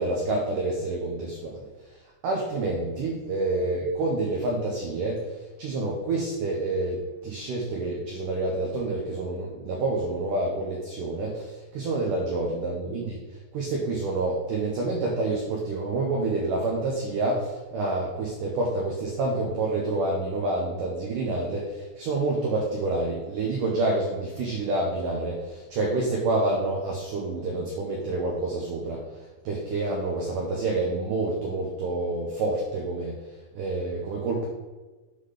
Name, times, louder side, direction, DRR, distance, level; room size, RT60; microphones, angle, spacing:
voice 1, 0.0-2.0 2.2-13.2 13.5-33.2 33.5-34.5, right 2 dB, 75° right, -2 dB, 2.0 m, -28 dB
8.1 x 3.9 x 5.0 m, 1.2 s
omnidirectional pair, 4.9 m